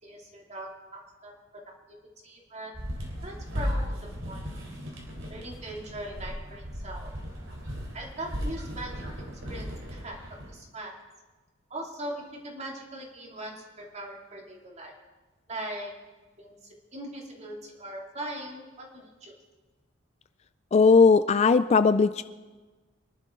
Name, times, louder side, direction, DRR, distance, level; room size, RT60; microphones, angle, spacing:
voice 1, 0.0-2.0 2.2-2.8 3.2-4.5 5.3-7.1 7.9-11.0 11.7-15.0 15.5-16.0 16.4-19.3, right 1 dB, 35° right, 0 dB, 2.7 m, -40 dB
sound 1, 2.7-10.5, equal, 70° right, 3.6 m, -36 dB
voice 2, 20.7-22.2, left 4 dB, 35° left, 13 dB, 0.3 m, -18 dB
24.5 x 11.5 x 3.8 m, 1.3 s
head